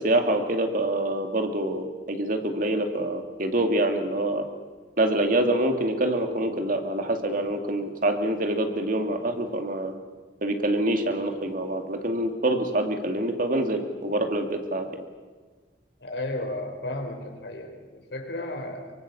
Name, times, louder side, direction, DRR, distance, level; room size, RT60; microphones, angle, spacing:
voice 1, 0.0-4.5 5.0-9.9 10.4-14.9, right 1 dB, 50° right, 5 dB, 2.6 m, -26 dB
voice 2, 16.0-18.9, left 1 dB, 75° left, 3 dB, 4.7 m, -34 dB
24.0 x 24.0 x 7.1 m, 1.4 s
head